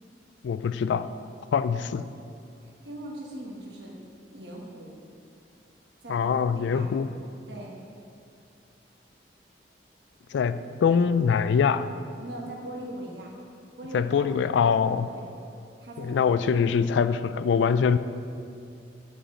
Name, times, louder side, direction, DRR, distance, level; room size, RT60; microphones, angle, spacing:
voice 1, 0.4-1.1 1.5-2.1 6.1-7.1 10.3-11.9 13.9-15.1 16.0-18.0, left 6 dB, 80° left, 13 dB, 0.3 m, -23 dB
voice 2, 2.6-3.9 4.3-5.0 6.0-6.9 7.5-7.8 12.2-13.3 13.8-15.3 15.8-16.2, right 1 dB, 70° right, -2 dB, 1.3 m, -41 dB
10.0 x 5.0 x 4.2 m, 2.4 s
head